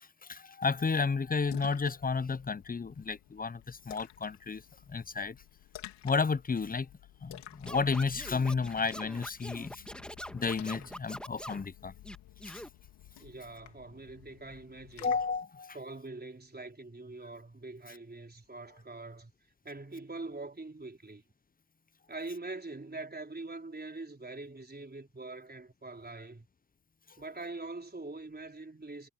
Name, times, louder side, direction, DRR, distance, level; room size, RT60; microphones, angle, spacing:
voice 1, 0.2-4.6 4.9-5.4 6.0-6.9 7.2-9.8 10.3-11.9 12.4-12.6 15.0-15.8, left 4 dB, 20° left, 0.6 m, -32 dB
Splash splatter, 1.1-15.4, left 14 dB, 90° left, 3.1 m, -52 dB
Scratching (performance technique), 7.7-11.7 12.0-12.7, equal, ahead, 2.2 m, -44 dB
voice 2, 13.2-15.1 15.7-19.3 19.6-21.2 22.1-26.5 27.2-29.1, right 2 dB, 25° right, 4.5 m, -43 dB
supercardioid pair, 50°, 40 cm